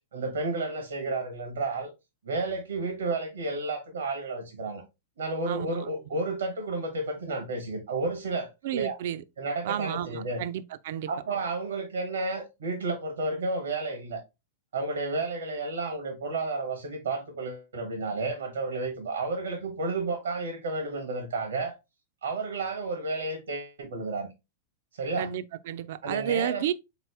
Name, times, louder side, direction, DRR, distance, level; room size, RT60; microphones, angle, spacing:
voice 1, 0.1-1.9 2.2-4.8 5.2-9.0 9.4-10.4 11.1-14.2 14.7-21.8 22.2-24.3 25.0-25.3 26.0-26.7, right 3 dB, 85° right, 1.0 m, -31 dB
voice 2, 8.6-9.2 9.6-11.1 25.2-26.7, right 10 dB, 65° right, 0.4 m, -31 dB
3.9 x 3.0 x 3.2 m
hypercardioid pair, 115°, 0 cm